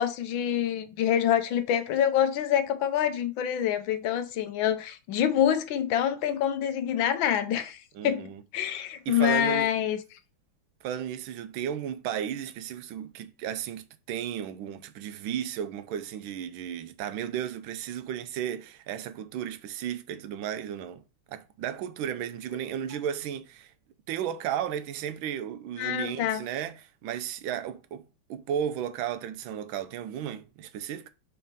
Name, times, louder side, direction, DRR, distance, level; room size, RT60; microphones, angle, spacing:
voice 1, 0.0-8.3 8.5-10.0 25.8-26.4, left 10 dB, 75° left, 1.5 m, -26 dB
voice 2, 7.9-8.4 9.1-9.7 10.8-21.0 21.3-23.7 24.1-28.0 28.3-31.1, right 9 dB, 80° right, 1.4 m, -34 dB
4.5 x 4.2 x 5.2 m
omnidirectional pair, 2.2 m